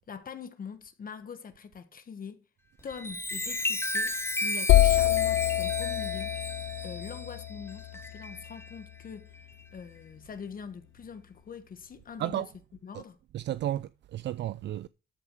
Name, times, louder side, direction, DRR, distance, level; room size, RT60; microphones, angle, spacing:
voice 1, 0.1-2.4 2.8-4.1 4.4-6.3 6.8-9.3 9.7-12.5 12.8-13.2, left 6 dB, 45° left, 1.4 m, -43 dB
Chime, 2.8-8.8 9.3-9.6, left 1 dB, 10° left, 1.3 m, -34 dB
sound 1, 4.7-8.5, left 15 dB, 90° left, 0.4 m, -26 dB
voice 2, 12.2-12.5 12.9-13.0 13.3-14.9, right 13 dB, 60° right, 0.4 m, -33 dB
13.5 x 4.9 x 6.2 m
cardioid pair, 90°, 20 cm